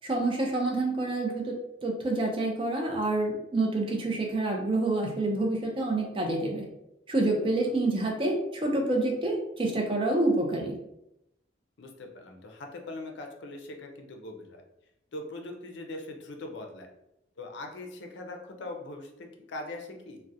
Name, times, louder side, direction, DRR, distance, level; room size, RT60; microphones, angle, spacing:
voice 1, 0.0-1.5 1.8-6.7 7.1-10.8, right 2 dB, 30° right, 1 dB, 0.4 m, -27 dB
voice 2, 11.8-14.6 15.1-16.9 17.4-20.2, left 2 dB, 75° left, 3 dB, 0.4 m, -41 dB
2.3 x 2.0 x 2.6 m, 0.84 s
head